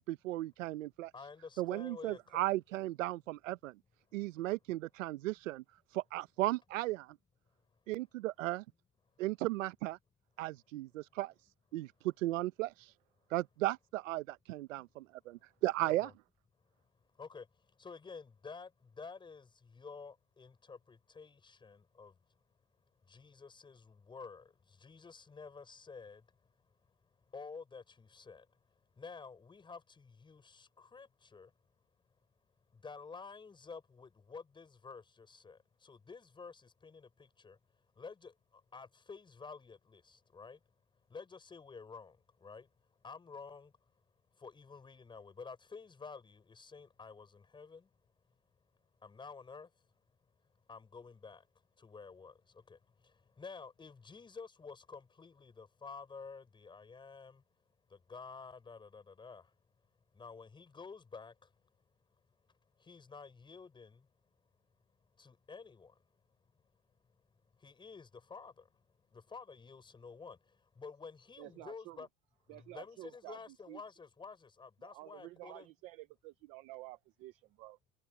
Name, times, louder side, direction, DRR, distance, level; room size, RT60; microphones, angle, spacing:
voice 1, 0.0-1.1 1.6-3.7 4.1-5.6 5.9-7.2 7.9-8.6 9.2-10.0 10.4-11.3 11.7-12.9 13.3-16.1, right 17 dB, 70° right, 1.0 m, -36 dB
voice 2, 1.1-2.4 15.8-16.1 17.1-22.2 23.0-26.5 26.9-27.0 27.3-28.6 28.9-31.5 32.7-37.6 38.0-40.6 41.1-42.7 43.0-43.7 44.3-47.9 49.0-49.9 50.7-51.5 51.8-57.4 57.9-59.5 60.1-61.5 62.8-64.1 65.2-66.0 66.5-66.6 67.6-68.8 69.1-72.1 72.5-75.7, left 5 dB, 10° left, 6.0 m, -51 dB
voice 3, 71.4-72.0 72.5-73.8 74.8-77.8, right 18 dB, 20° right, 0.3 m, -51 dB
supercardioid pair, 150°, 40 cm